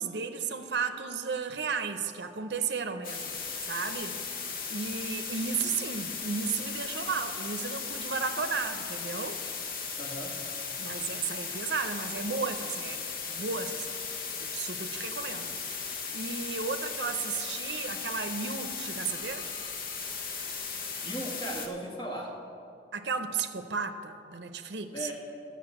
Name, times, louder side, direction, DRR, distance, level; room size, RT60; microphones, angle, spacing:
voice 1, 0.0-4.2 4.7-9.4 10.8-14.0 14.4-19.5 22.9-25.1, right 5 dB, 80° right, 8 dB, 0.6 m, -34 dB
sound 1, 3.0-21.7, left 5 dB, 55° left, 1.0 m, -37 dB
voice 2, 10.0-10.4 21.0-22.4 24.9-25.1, right 1 dB, 25° left, -1 dB, 1.4 m, -37 dB
12.0 x 6.6 x 7.7 m, 2.7 s
head